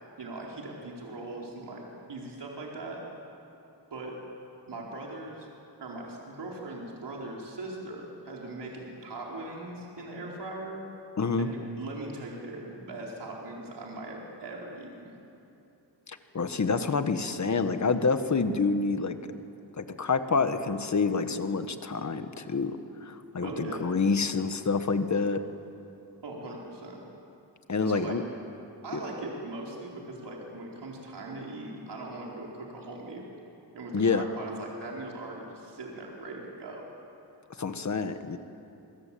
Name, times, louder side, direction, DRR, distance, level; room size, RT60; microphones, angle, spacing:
voice 1, 0.2-1.8 2.1-3.0 3.9-4.1 4.7-5.5 5.8-10.8 11.4-15.1 23.4-23.9 26.2-27.0 27.9-28.2 28.8-33.4 33.7-36.8, right 2 dB, 70° right, -2 dB, 4.4 m, -40 dB
voice 2, 11.2-11.5 16.1-19.2 19.8-25.4 27.7-28.2 28.9-29.0 33.9-34.2 37.6-38.4, left 4 dB, 40° left, 9 dB, 1.5 m, -27 dB
28.0 x 23.0 x 8.7 m, 2.8 s
wide cardioid pair, 135°, 43 cm